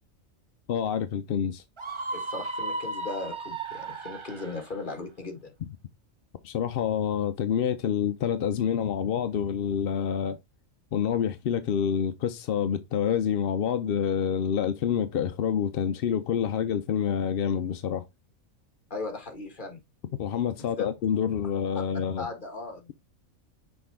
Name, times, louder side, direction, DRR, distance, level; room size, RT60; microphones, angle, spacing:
voice 1, 0.7-1.6 6.4-10.4 10.9-18.0 20.2-22.3, left 8 dB, 60° left, 0.6 m, -27 dB
Screaming, 1.8-4.7, right 2 dB, 30° right, 0.6 m, -35 dB
voice 2, 2.1-5.5 18.9-19.8 20.8-20.9 21.8-21.9 22.2-22.9, left 3 dB, 35° left, 1.8 m, -37 dB
6.3 x 4.5 x 3.4 m
omnidirectional pair, 1.4 m